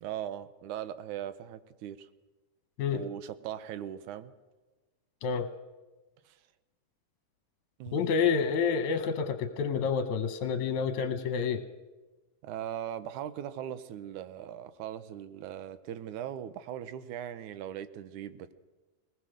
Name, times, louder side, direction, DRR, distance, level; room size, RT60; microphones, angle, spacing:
voice 1, 0.0-2.1 2.9-4.3 6.3-6.4 7.8-8.1 12.4-18.5, right 10 dB, 75° right, 13 dB, 2.3 m, -39 dB
voice 2, 7.9-11.7, left 6 dB, 70° left, 8 dB, 2.2 m, -28 dB
22.0 x 19.0 x 6.5 m, 1.2 s
omnidirectional pair, 3.7 m